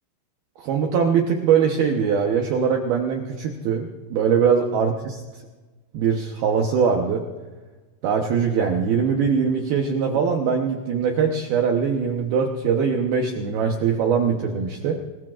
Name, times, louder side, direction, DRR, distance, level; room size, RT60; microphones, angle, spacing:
voice 1, 0.6-5.4 5.9-7.2 8.0-15.0, right 6 dB, 90° right, 2 dB, 2.1 m, -22 dB
27.5 x 20.5 x 2.5 m, 1.3 s
omnidirectional pair, 6.0 m